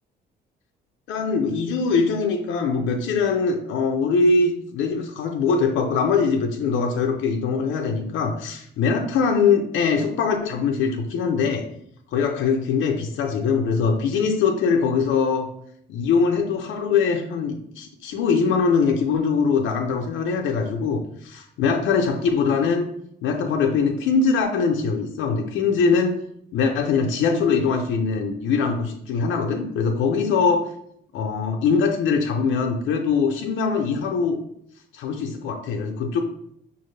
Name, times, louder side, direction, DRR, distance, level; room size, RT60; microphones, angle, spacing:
voice 1, 1.1-11.6 12.1-15.5 15.9-22.9 23.2-26.2 26.5-30.6 31.1-34.4 34.9-36.2, left 5 dB, 85° left, 2 dB, 0.5 m, -22 dB
5.5 x 2.4 x 3.2 m, 0.71 s
cardioid pair, 90°, 20 cm